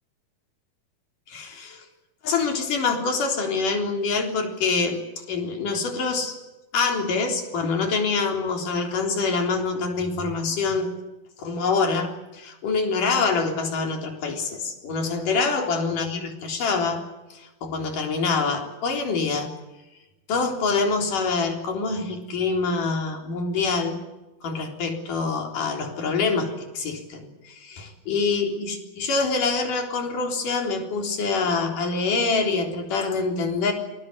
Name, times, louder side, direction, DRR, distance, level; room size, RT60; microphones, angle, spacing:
voice 1, 1.3-1.9 2.2-5.0 5.3-6.4 6.7-10.9 11.4-17.0 17.3-19.5 20.3-24.0 24.4-33.7, left 4 dB, 55° left, 3 dB, 5.2 m, -25 dB
27.5 x 20.0 x 8.1 m, 1.0 s
omnidirectional pair, 4.4 m